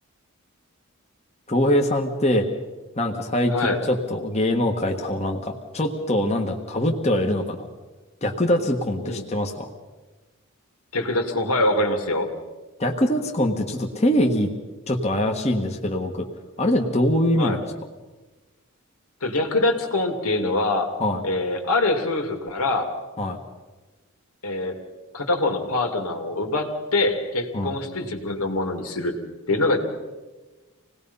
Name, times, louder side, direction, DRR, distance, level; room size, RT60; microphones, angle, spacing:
voice 1, 1.5-2.5 3.0-7.7 8.2-9.7 12.8-14.5 14.9-16.3 16.6-17.6 21.0-21.2 23.2-23.4 27.5-27.7, left 1 dB, 30° left, 2 dB, 1.4 m, -23 dB
voice 2, 10.9-12.3 17.4-17.6 19.2-20.9 21.2-22.9 24.4-24.8 25.1-29.1 29.5-29.8, left 2 dB, 85° left, 4 dB, 2.7 m, -24 dB
26.5 x 18.5 x 5.5 m, 1.2 s
head